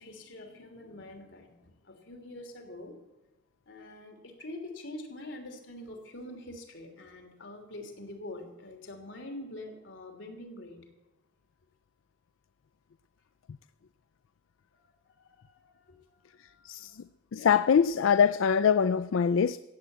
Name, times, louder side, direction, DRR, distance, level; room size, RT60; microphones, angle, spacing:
voice 1, 0.0-3.0 3.7-10.9 14.7-16.9, left 1 dB, 70° left, 3.0 m, -45 dB
voice 2, 17.3-19.6, left 7 dB, 85° left, 0.4 m, -23 dB
15.5 x 8.8 x 8.0 m
head